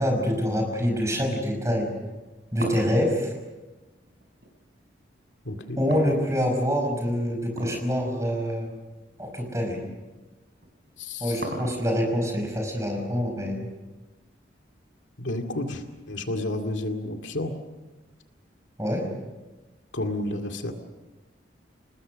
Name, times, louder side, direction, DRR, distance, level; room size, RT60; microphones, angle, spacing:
voice 1, 0.0-1.9 2.5-3.3 5.8-8.7 9.2-9.8 11.2-13.7 18.8-19.1, equal, 15° right, 2 dB, 5.5 m, -26 dB
sound 1, 2.1-4.5 5.9-6.8 7.5-7.9 8.3-8.4 9.1-9.3 10.6-12.1, right 1 dB, 55° right, 4.6 m, -36 dB
voice 2, 5.4-5.8 11.0-11.4 15.2-17.5 19.9-20.7, left 1 dB, 85° left, 4 dB, 2.3 m, -31 dB
29.0 x 19.5 x 6.4 m, 1.2 s
head